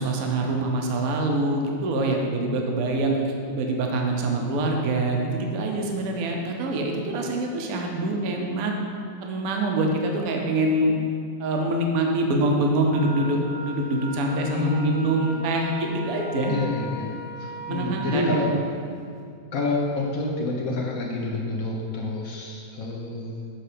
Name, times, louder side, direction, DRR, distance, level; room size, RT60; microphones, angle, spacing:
voice 1, 0.0-8.7 9.2-10.9 11.4-16.5 17.7-18.4, right 2 dB, 60° right, 1 dB, 1.1 m, -25 dB
Wind instrument woodwind instrument, 12.9-18.4, right 1 dB, 15° right, 1.2 m, -38 dB
voice 2, 14.5-15.4 16.5-17.1 17.4-18.5 19.5-23.4, left 2 dB, 60° left, -1 dB, 0.9 m, -28 dB
7.5 x 4.0 x 5.0 m, 2.3 s
omnidirectional pair, 2.0 m